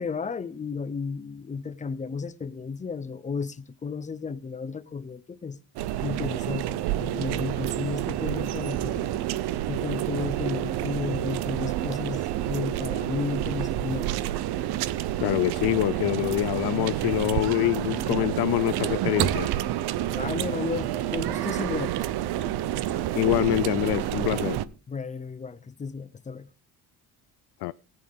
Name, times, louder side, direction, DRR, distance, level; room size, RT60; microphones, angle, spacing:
voice 1, 0.0-5.6 6.0-9.2 9.7-14.1 20.1-22.1 24.3-24.5 24.9-26.5, left 5 dB, 20° left, 0.6 m, -33 dB
sound 1, 5.8-24.7, right 13 dB, 80° right, 0.8 m, -29 dB
voice 2, 15.2-19.5 23.1-24.6 27.6-27.7, left 18 dB, 80° left, 0.5 m, -25 dB
18.5 x 8.7 x 3.5 m
cardioid pair, 145°, 39 cm